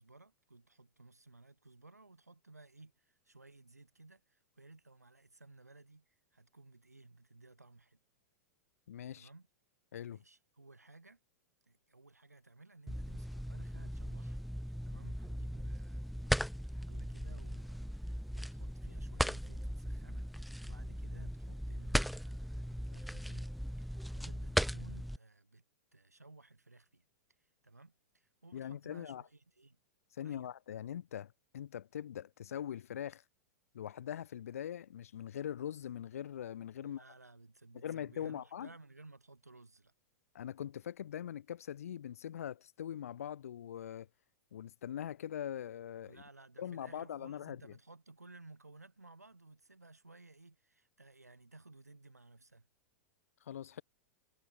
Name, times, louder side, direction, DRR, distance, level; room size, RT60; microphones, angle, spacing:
voice 1, 0.0-8.0 9.1-9.5 10.1-11.2 11.6-14.4 14.8-23.5 23.8-25.6 25.9-27.1 27.4-29.8 30.2-30.5 36.8-39.9 46.1-52.7, right 2 dB, 85° right, 2.6 m, -58 dB
voice 2, 8.9-9.3 9.9-10.2 28.5-29.2 30.2-33.2 33.7-37.0 37.8-38.7 40.3-44.1 44.5-46.2 46.6-47.7 53.5-53.8, left 10 dB, 65° left, 0.3 m, -42 dB
sound 1, 12.9-25.2, equal, ahead, 0.7 m, -38 dB
figure-of-eight pair, 100°, 8 cm